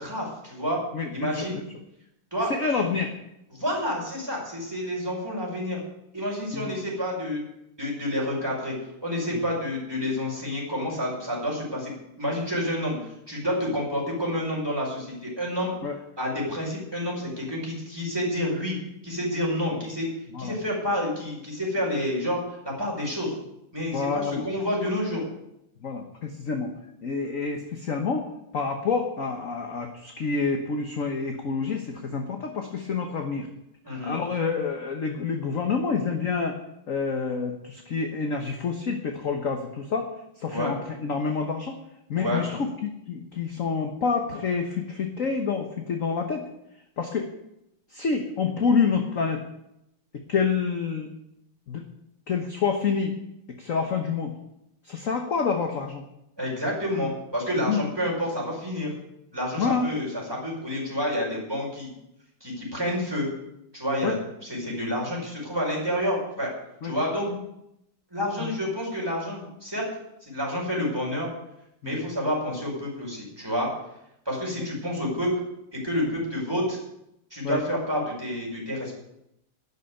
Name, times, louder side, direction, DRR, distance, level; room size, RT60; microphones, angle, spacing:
voice 1, 0.0-0.8 1.1-1.6 2.3-2.5 3.5-5.8 6.1-7.4 7.8-8.7 9.0-13.0 13.3-15.7 16.2-18.8 19.0-20.1 20.4-22.4 22.8-23.3 23.7-25.2 33.8-34.2 40.5-40.7 42.2-42.4 56.4-58.9 59.3-61.9 62.4-63.3 63.7-64.1 64.4-66.5 66.8-67.3 68.1-69.9 70.2-71.3 71.8-73.7 74.3-75.3 75.7-76.8 77.3-78.9, equal, 10° right, -3 dB, 5.2 m, -29 dB
voice 2, 0.9-1.5 2.5-3.1 6.5-6.7 9.3-9.4 15.8-16.0 20.3-20.6 23.9-24.4 25.8-26.7 27.0-33.5 34.0-36.6 36.9-41.8 42.1-46.4 47.0-47.3 47.9-49.4 50.1-51.1 51.7-51.8 52.3-53.1 53.6-54.3 54.8-56.0 57.6-57.8 59.6-59.9 64.0-64.2 66.8-67.0 67.3-67.4 68.4-68.5 71.8-72.0 77.4-77.6, left 5 dB, 45° left, 4 dB, 1.3 m, -28 dB
12.0 x 7.0 x 9.8 m, 0.82 s
omnidirectional pair, 2.4 m